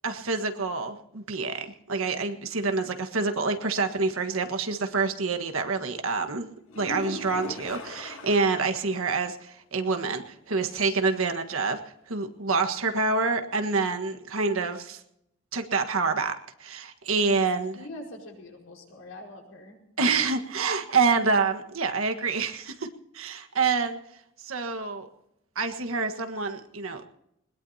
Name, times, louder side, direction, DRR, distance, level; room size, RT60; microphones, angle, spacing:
voice 1, 0.0-6.5 6.7-11.8 12.1-15.0 15.5-17.7 20.0-22.9 23.1-24.0 24.4-25.1 25.5-27.1, right 4 dB, 75° right, 6 dB, 1.6 m, -27 dB
sound 1, 6.7-8.9 9.3-9.4 9.8-9.9 13.7-13.8, left 2 dB, 85° left, 6.8 m, -39 dB
voice 2, 17.7-19.8, left 1 dB, 70° left, 0 dB, 5.0 m, -43 dB
21.0 x 21.0 x 2.9 m, 0.81 s
head